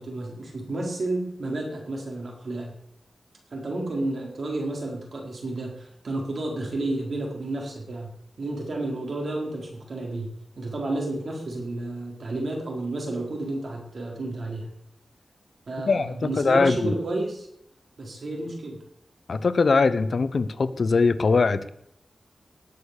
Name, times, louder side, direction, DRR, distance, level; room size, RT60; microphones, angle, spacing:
voice 1, 0.0-2.7 3.5-8.1 8.4-10.3 10.6-14.7 15.7-17.5 18.0-18.8, right 2 dB, 65° right, 0 dB, 4.3 m, -31 dB
voice 2, 15.9-16.9 19.3-21.7, left 4 dB, 60° left, 14 dB, 0.8 m, -22 dB
19.0 x 6.6 x 6.7 m, 0.75 s
wide cardioid pair, 105°, 0 cm